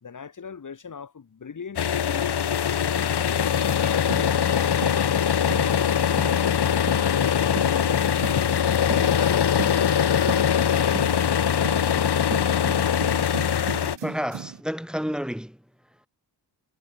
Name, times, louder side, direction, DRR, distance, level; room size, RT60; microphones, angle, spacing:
voice 1, 0.0-2.3 2.8-3.6 3.8-4.7 5.5-9.5 9.9-11.6, left 6 dB, 45° left, 4.7 m, -38 dB
sound 1, 1.8-14.0, left 8 dB, 65° left, 3.6 m, -22 dB
sound 2, 3.6-14.6, right 9 dB, 70° right, 6.5 m, -38 dB
voice 2, 14.0-16.1, equal, ahead, 7.0 m, -31 dB
wide cardioid pair, 135°, 44 cm